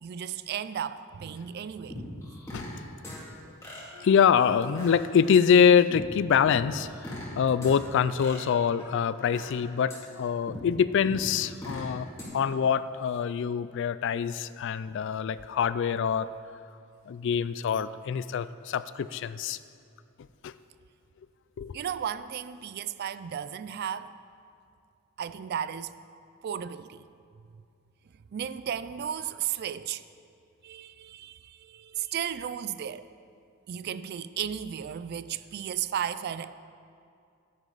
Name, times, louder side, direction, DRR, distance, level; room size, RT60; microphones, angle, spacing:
voice 1, 0.0-2.0 21.7-24.1 25.2-26.0 26.4-27.0 28.3-30.0 30.6-33.1 33.7-36.5, right 9 dB, 50° right, 0.3 m, -34 dB
sound 1, 1.9-2.8 3.0-3.2 3.6-4.9 5.3-5.4 5.9-6.0 6.5-7.3 7.6-7.7 8.2-9.5 9.9-10.0 10.5-10.6 11.0-11.8 12.2-12.3, left 1 dB, 15° left, 2.3 m, -41 dB
voice 2, 3.9-16.3 17.1-19.6 20.4-20.5 21.6-21.8, left 7 dB, 60° left, 0.3 m, -25 dB
10.5 x 10.0 x 4.0 m
head